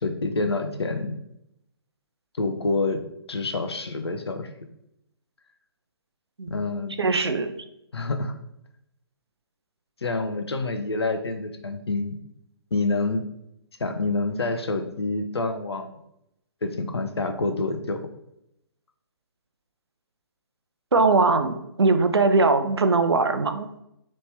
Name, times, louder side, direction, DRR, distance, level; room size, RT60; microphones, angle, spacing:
voice 1, 0.0-1.2 2.4-3.0 3.3-4.5 6.5-6.9 7.9-8.3 10.0-12.2 12.7-13.2 13.8-15.9 16.6-18.0, left 3 dB, 80° left, 6 dB, 0.7 m, -27 dB
voice 2, 7.0-7.5 20.9-23.8, right 3 dB, 85° right, 8 dB, 0.5 m, -21 dB
4.1 x 3.2 x 3.4 m, 0.80 s
figure-of-eight pair, 140°, 13 cm